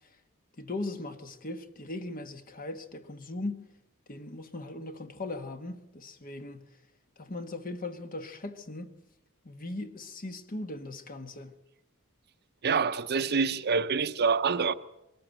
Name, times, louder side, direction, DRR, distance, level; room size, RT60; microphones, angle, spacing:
voice 1, 0.6-3.7 4.1-6.6 7.2-8.9 9.4-11.5, left 2 dB, 40° left, 1.3 m, -39 dB
voice 2, 12.6-14.7, right 5 dB, 50° right, 0.7 m, -26 dB
22.5 x 13.5 x 8.9 m
head